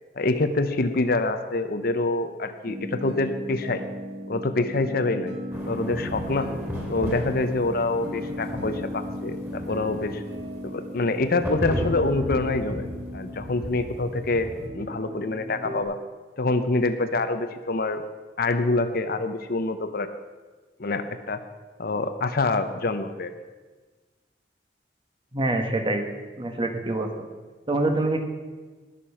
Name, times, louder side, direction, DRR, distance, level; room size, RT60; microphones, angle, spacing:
voice 1, 0.2-3.8 4.3-5.4 5.7-6.5 6.9-10.2 10.6-12.8 13.1-16.0 16.4-18.0 18.4-20.1 20.8-21.4 21.8-23.3, left 2 dB, 60° left, 9 dB, 0.8 m, -26 dB
sound 1, 2.7-15.8, equal, 70° right, 1.8 m, -37 dB
sound 2, 5.5-14.7, equal, 10° right, 3.0 m, -35 dB
voice 2, 25.3-26.1 26.4-27.3 27.7-28.2, right 2 dB, 30° right, 4 dB, 1.4 m, -25 dB
19.0 x 6.9 x 5.7 m, 1.3 s
head